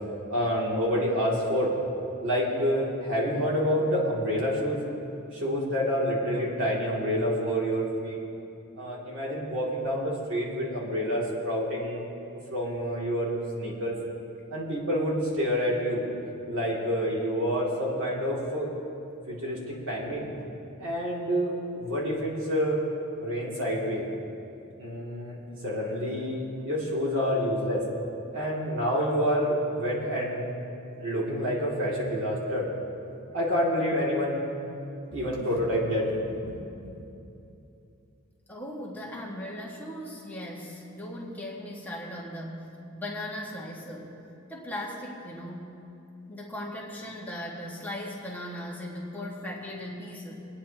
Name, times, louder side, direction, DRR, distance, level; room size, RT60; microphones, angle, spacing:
voice 1, 0.3-1.7 2.2-4.8 5.3-8.2 8.8-13.9 14.5-16.0 16.5-18.7 19.3-20.3 20.8-22.8 23.2-24.0 24.8-27.8 28.3-30.4 31.0-32.7 33.3-34.4 35.1-36.6 36.8-36.9, equal, 65° right, -5 dB, 2.7 m, -28 dB
voice 2, 38.5-44.1 44.5-45.8 46.3-50.3, left 1 dB, 10° left, -5 dB, 1.7 m, -38 dB
24.0 x 9.7 x 2.9 m, 2.8 s
head